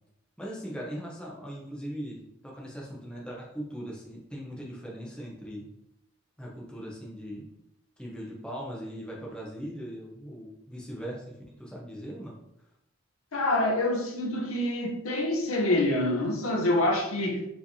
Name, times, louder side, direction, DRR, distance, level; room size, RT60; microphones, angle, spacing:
voice 1, 0.4-5.7 6.4-7.5 8.0-12.3, equal, 5° left, 0.7 m, -39 dB
voice 2, 13.3-17.5, left 1 dB, 85° left, 0.8 m, -26 dB
4.8 x 3.2 x 2.7 m
head